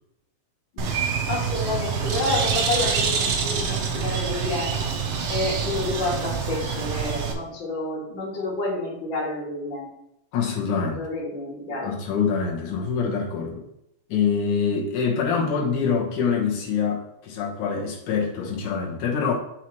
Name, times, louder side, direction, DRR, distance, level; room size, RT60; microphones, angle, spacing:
Bird, 0.8-7.3, right 6 dB, 65° right, 1.9 m, -26 dB
voice 1, 1.3-4.9 5.3-9.9 10.8-11.9, left 2 dB, 45° left, -4 dB, 2.3 m, -29 dB
voice 2, 10.3-11.0 11.8-13.7 14.1-19.3, left 6 dB, 90° left, -2 dB, 2.8 m, -25 dB
7.8 x 5.7 x 3.1 m, 0.83 s
omnidirectional pair, 3.4 m